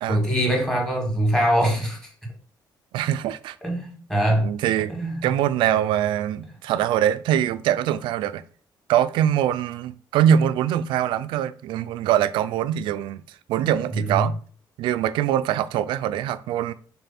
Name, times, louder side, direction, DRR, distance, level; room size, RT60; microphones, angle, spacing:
voice 1, 0.1-2.0 3.6-4.5 4.9-5.2 14.0-14.2, right 1 dB, 5° left, 1.9 m, -23 dB
voice 2, 2.9-3.6 4.3-4.9 5.2-8.4 8.9-14.3 14.8-16.7, right 10 dB, 85° right, 0.4 m, -23 dB
3.7 x 3.4 x 4.1 m
cardioid pair, 110°, 8 cm